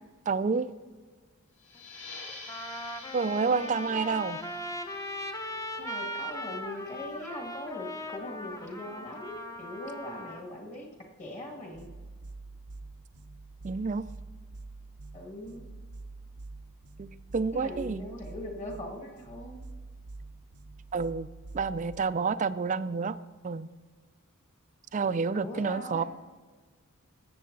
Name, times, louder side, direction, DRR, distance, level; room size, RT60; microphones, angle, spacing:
voice 1, 0.3-0.7 3.1-4.4 13.6-14.0 17.0-18.1 20.9-21.3 21.5-23.2 23.4-23.7 24.9-26.0, right 5 dB, 35° right, 14 dB, 0.3 m, -29 dB
sound 1, 1.6-6.8, left 3 dB, 60° left, 3.6 m, -48 dB
Trumpet, 1.8-1.9 2.5-10.4, left 1 dB, 15° left, 0.7 m, -39 dB
voice 2, 3.5-4.0 5.8-10.9 11.2-11.9 15.1-15.6 17.5-19.6 25.3-26.1, left 1 dB, 35° left, 1 dB, 2.0 m, -41 dB
sound 2, 11.7-22.0, right 3 dB, 90° right, 0.7 m, -46 dB
16.5 x 7.7 x 3.9 m, 1.5 s
head